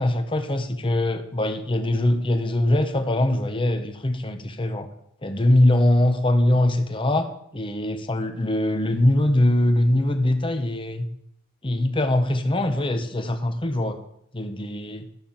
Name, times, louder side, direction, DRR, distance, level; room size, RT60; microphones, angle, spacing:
voice 1, 0.0-4.9 5.2-11.1 11.6-14.0 14.3-15.1, left 1 dB, 25° left, 7 dB, 1.1 m, -22 dB
12.5 x 6.1 x 7.4 m, 0.74 s
head